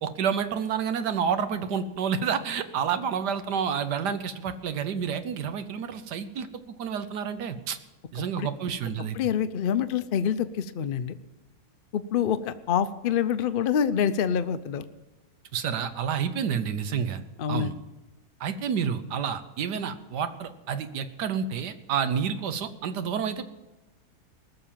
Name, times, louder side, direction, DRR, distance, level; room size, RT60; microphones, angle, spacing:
voice 1, 0.0-6.5 6.8-7.8 8.1-9.2 15.5-17.2 17.5-17.7 18.4-23.4, right 7 dB, 85° right, 10 dB, 1.5 m, -29 dB
voice 2, 9.1-11.1 11.9-14.8 17.4-17.7, left 8 dB, 90° left, 12 dB, 0.4 m, -26 dB
19.5 x 6.8 x 7.4 m, 1.0 s
omnidirectional pair, 1.7 m